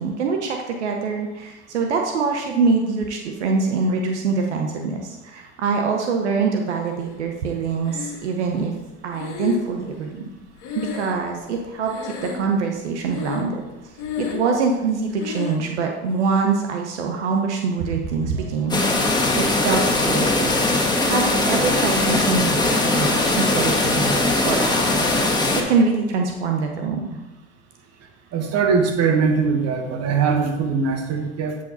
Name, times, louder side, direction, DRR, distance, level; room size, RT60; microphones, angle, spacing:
voice 1, 0.0-8.7 9.0-10.2 10.8-19.1 19.3-20.5 21.0-27.2, right 4 dB, 85° right, 3 dB, 0.8 m, -24 dB
Breathing, 7.8-8.6 9.1-11.6 11.8-12.7 13.0-13.6 13.9-14.6 15.2-15.7, left 7 dB, 60° left, 1.7 m, -32 dB
sound 1, 18.7-25.6, left 2 dB, 10° left, 1.6 m, -20 dB
voice 2, 28.3-31.6, right 5 dB, 50° right, 4 dB, 1.5 m, -21 dB
8.1 x 5.1 x 4.0 m, 1.1 s
hypercardioid pair, 75°, 33 cm